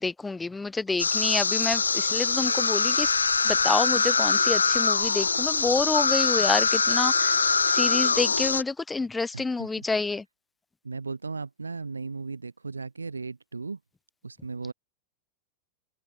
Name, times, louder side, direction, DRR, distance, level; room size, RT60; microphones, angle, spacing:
voice 1, 0.0-3.1 3.4-7.3 7.7-10.2, left 3 dB, 10° left, 1.2 m, -28 dB
sound 1, 1.0-8.6, left 5 dB, 75° left, 0.3 m, -23 dB
voice 2, 9.3-9.9 10.8-13.8 14.2-14.7, right 4 dB, 80° right, 3.7 m, -36 dB
figure-of-eight pair, 90°, 0 cm